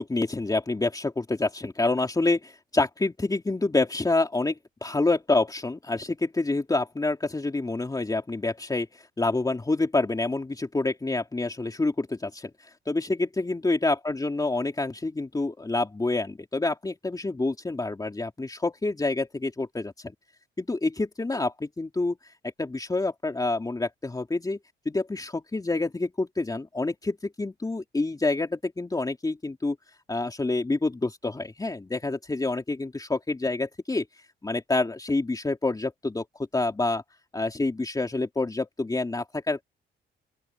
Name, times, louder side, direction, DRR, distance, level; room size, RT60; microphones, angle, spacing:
voice 1, 0.0-12.5 12.9-19.9 20.6-22.2 22.6-24.6 24.8-29.8 30.1-34.1 34.4-36.2 36.5-37.0 37.3-39.6, left 2 dB, 20° left, 3.1 m, -27 dB
open air
cardioid pair, 90°, 20 cm